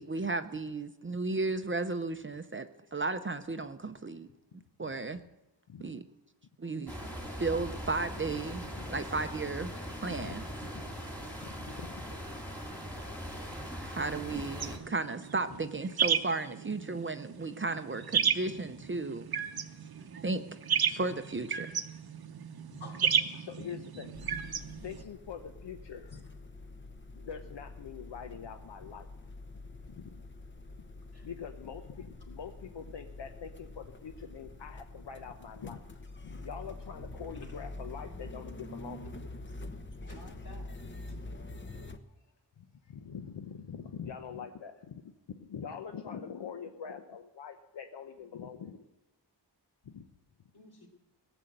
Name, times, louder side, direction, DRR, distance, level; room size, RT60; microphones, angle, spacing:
voice 1, 0.0-4.3 4.8-5.2 5.8-6.0 6.6-6.9 7.4-9.7 10.0-10.4 13.6-19.3 20.1-20.4 20.9-21.7, right 3 dB, 30° right, 9 dB, 0.6 m, -34 dB
sound 1, 6.9-14.8, equal, 5° left, 2.1 m, -41 dB
voice 2, 10.0-10.5 10.7-10.8 11.5-12.0 14.4-14.5 16.9-17.4 18.4-18.6 22.7-22.8 23.3-24.1 24.8-26.2 27.2-29.1 29.9-30.2 31.2-35.8 36.2-39.3 42.9-45.0 45.3-48.8 49.9-50.0, left 7 dB, 80° left, 6 dB, 0.8 m, -44 dB
sound 2, 14.6-25.0, right 7 dB, 60° right, 0.8 m, -33 dB
sound 3, 24.1-42.0, left 2 dB, 25° left, 0.8 m, -46 dB
voice 3, 40.1-40.8 50.5-50.9, left 3 dB, 60° left, 1 dB, 3.1 m, -51 dB
18.0 x 7.0 x 7.8 m, 0.98 s
wide cardioid pair, 140°, 43 cm